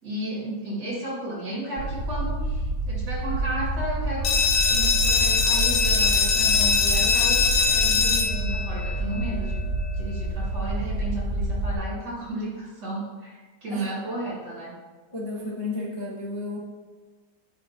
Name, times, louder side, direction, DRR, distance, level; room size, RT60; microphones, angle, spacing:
voice 1, 0.0-4.3 4.7-9.6 9.9-14.8, right 1 dB, 60° right, -5 dB, 2.8 m, -33 dB
sound 1, 1.8-11.8, right 2 dB, 85° right, 1.9 m, -28 dB
sound 2, 4.2-9.7, left 5 dB, 75° left, 1.3 m, -22 dB
voice 2, 15.1-16.6, left 2 dB, 20° left, -5 dB, 0.7 m, -32 dB
9.3 x 5.8 x 2.9 m, 1.3 s
omnidirectional pair, 2.1 m